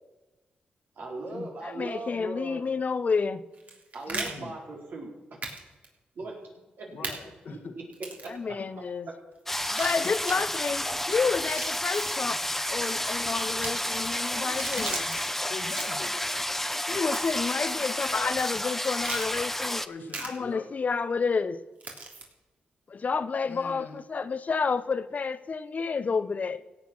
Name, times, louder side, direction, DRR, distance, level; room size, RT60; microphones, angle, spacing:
voice 1, 1.0-2.7 3.9-5.4 6.1-6.4 6.8-6.9 7.5-7.6 8.2-8.6, right 2 dB, 70° right, 4.5 m, -39 dB
voice 2, 1.6-3.4 8.3-9.1 9.7-12.4 12.7-15.0 16.9-19.8 20.2-21.6 22.9-26.6, left 5 dB, 50° left, 0.8 m, -30 dB
sound 1, 3.5-4.3 5.4-5.6 5.8-5.9 7.0-7.2 7.9-8.3 9.6-10.4 11.3-12.3 13.4-13.7 14.4-15.2 15.6-16.1 17.1-17.4 18.0-18.1 19.0-19.3 20.1-20.3 21.8-22.2, right 3 dB, 50° right, 3.3 m, -38 dB
voice 3, 4.1-4.5 6.9-7.7 10.0-10.1 14.7-15.1 15.5-16.2 17.3-17.8 19.8-20.6 23.4-24.0, left 4 dB, 70° left, 1.7 m, -42 dB
sound 2, 9.5-19.9, left 1 dB, 10° left, 0.8 m, -31 dB
16.5 x 8.2 x 6.2 m
cardioid pair, 60°, 3 cm